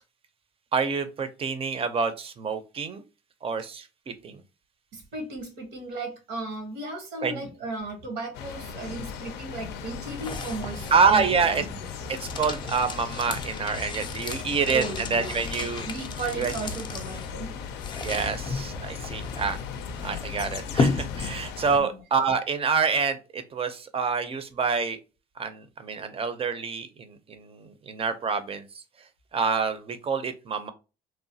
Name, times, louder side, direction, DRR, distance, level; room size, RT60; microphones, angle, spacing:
voice 1, 0.7-3.0 3.4-4.4 7.2-7.4 10.9-11.6 12.1-15.9 16.3-16.5 18.0-19.6 20.0-25.0 25.4-28.8 29.3-30.7, right 5 dB, 35° right, 0.5 m, -27 dB
voice 2, 4.9-11.9 14.7-15.4 15.9-17.5 21.7-21.9, right 3 dB, 90° right, 1.2 m, -35 dB
sound 1, 8.3-21.8, left 6 dB, 85° left, 0.4 m, -38 dB
sound 2, 9.5-21.7, left 4 dB, 30° left, 0.4 m, -34 dB
3.0 x 2.1 x 2.6 m
cardioid pair, 110°, 17 cm